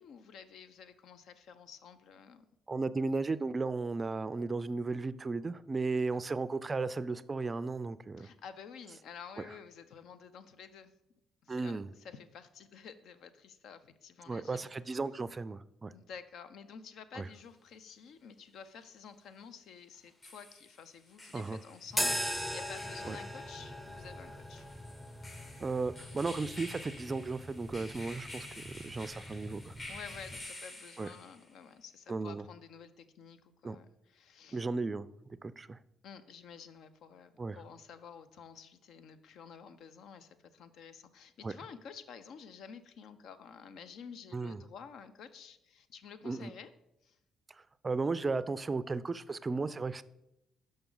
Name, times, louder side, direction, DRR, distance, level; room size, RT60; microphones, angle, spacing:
voice 1, 0.0-2.5 6.1-6.2 8.2-10.9 11.4-14.7 15.9-24.6 29.9-34.6 36.0-46.7 47.0-47.2, left 6 dB, 70° left, 12 dB, 0.5 m, -51 dB
voice 2, 2.7-8.3 11.5-11.9 14.3-15.9 17.1-17.3 21.3-21.6 23.1-23.2 25.6-29.7 31.0-31.1 32.1-32.4 33.6-33.8 34.5-35.1 35.4-35.8 37.4-37.6 41.4-41.5 44.3-44.6 46.2-46.5 47.5-50.0, right 3 dB, 30° right, 16 dB, 0.3 m, -35 dB
sound 1, 17.3-17.4 19.9-31.5, left 1 dB, 40° left, 1.8 m, -50 dB
sound 2, 21.9-30.4, equal, 5° left, 0.7 m, -40 dB
7.0 x 5.2 x 3.8 m, 0.84 s
supercardioid pair, 65°, 0 cm